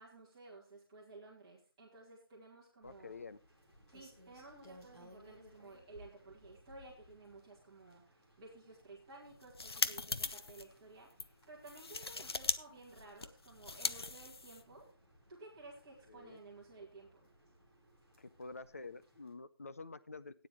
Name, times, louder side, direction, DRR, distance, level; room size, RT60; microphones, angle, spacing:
voice 1, 0.0-3.1 3.9-14.9 15.3-17.3, right 3 dB, 10° right, -6 dB, 2.5 m, -55 dB
voice 2, 2.8-3.4 16.1-16.4 18.2-20.5, left 3 dB, 35° left, 14 dB, 0.6 m, -49 dB
Rain, 2.8-19.3, equal, 5° left, 1.4 m, -64 dB
sound 1, 9.3-10.6 11.1-11.3 11.7-12.6 12.8-14.8, left 3 dB, 85° left, 0.9 m, -39 dB
14.0 x 9.7 x 3.1 m, 0.33 s
figure-of-eight pair, 175°, 13 cm